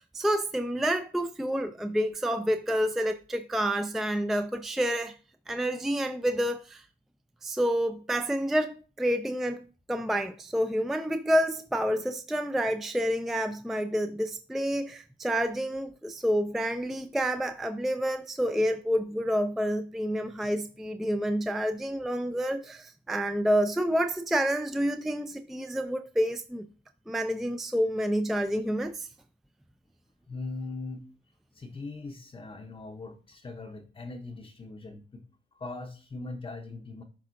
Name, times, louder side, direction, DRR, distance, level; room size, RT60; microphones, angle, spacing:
voice 1, 0.0-5.1 5.5-6.8 7.4-26.7 27.1-29.1, equal, ahead, 0.3 m, -28 dB
voice 2, 30.3-31.0 31.5-35.2 35.5-37.0, left 3 dB, 25° left, 0.7 m, -40 dB
10.5 x 3.6 x 2.5 m
cardioid pair, 90°, 20 cm